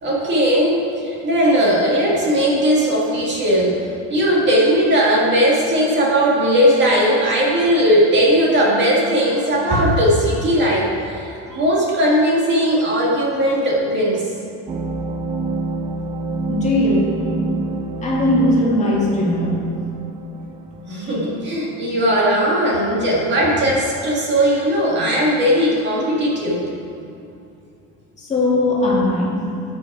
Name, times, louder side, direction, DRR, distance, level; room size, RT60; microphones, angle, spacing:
voice 1, 0.0-3.8 4.1-14.3 20.9-26.7, equal, 35° right, -4 dB, 2.1 m, -18 dB
sound 1, 14.7-21.5, right 2 dB, 20° right, 0.6 m, -27 dB
voice 2, 16.5-17.1 18.0-19.7 21.0-21.2 28.2-29.4, left 1 dB, 25° left, -5 dB, 2.1 m, -19 dB
13.5 x 6.4 x 4.9 m, 2.6 s
cardioid pair, 160°, 30 cm